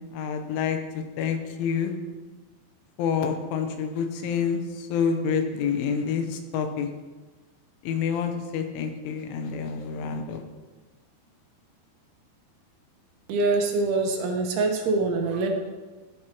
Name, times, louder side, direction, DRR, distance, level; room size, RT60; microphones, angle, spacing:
voice 1, 0.0-1.9 3.0-6.9 7.8-10.4, left 6 dB, 85° left, 5 dB, 3.5 m, -28 dB
voice 2, 13.3-15.5, right 3 dB, 80° right, 2 dB, 3.6 m, -24 dB
12.5 x 11.0 x 3.0 m, 1.3 s
omnidirectional pair, 5.4 m